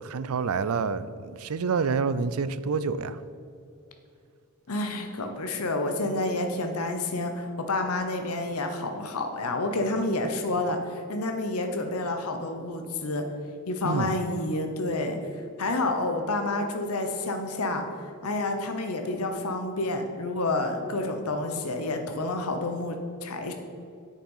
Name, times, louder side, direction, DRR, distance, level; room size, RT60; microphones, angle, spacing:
voice 1, 0.0-3.2 13.8-14.1, right 5 dB, 75° right, 0.5 m, -28 dB
voice 2, 4.7-13.2 13.7-15.2 15.6-17.8 18.2-23.5, left 2 dB, 85° left, 0.9 m, -29 dB
8.8 x 6.9 x 5.5 m
head